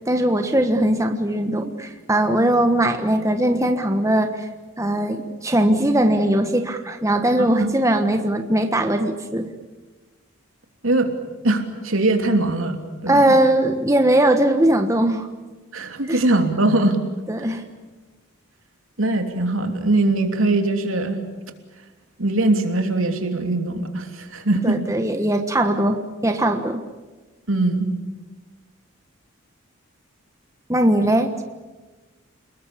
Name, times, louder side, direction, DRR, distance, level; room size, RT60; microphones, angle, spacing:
voice 1, 0.1-4.5 4.8-9.5 13.1-15.3 16.1-16.2 17.3-17.6 24.6-26.8 30.7-31.4, right 1 dB, 15° right, 6 dB, 1.3 m, -20 dB
voice 2, 7.4-7.7 10.8-11.1 11.4-13.3 15.7-17.0 17.4-17.6 19.0-21.2 22.2-24.8 27.5-27.9, right 2 dB, 75° right, 5 dB, 3.1 m, -21 dB
29.0 x 20.5 x 8.5 m, 1.2 s
head